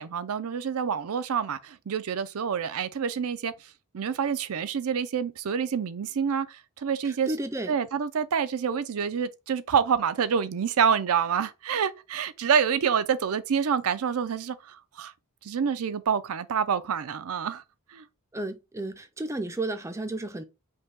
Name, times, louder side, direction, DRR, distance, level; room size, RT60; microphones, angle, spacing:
voice 1, 0.0-3.5 3.9-6.5 6.8-7.3 7.7-15.1 15.4-17.6 17.9-18.0, right 7 dB, 70° right, 0.5 m, -27 dB
voice 2, 7.0-7.7 18.3-20.4, right 2 dB, 15° right, 0.4 m, -33 dB
5.3 x 2.2 x 3.5 m
head